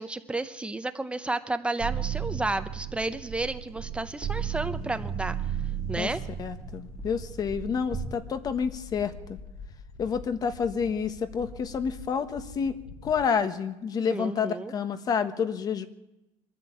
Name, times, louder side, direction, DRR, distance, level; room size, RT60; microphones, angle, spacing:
voice 1, 0.0-5.4 5.9-6.2 14.1-14.7, right 2 dB, 10° right, 10 dB, 0.8 m, -32 dB
sound 1, 1.8-8.1, right 8 dB, 35° right, 2.6 m, -34 dB
sound 2, 3.3-13.2, left 5 dB, 70° left, 1.8 m, -46 dB
voice 2, 6.4-9.4 10.0-12.8 13.0-15.9, left 6 dB, 30° left, 12 dB, 1.4 m, -29 dB
23.5 x 14.0 x 8.5 m, 0.94 s
cardioid pair, 160°, 12 cm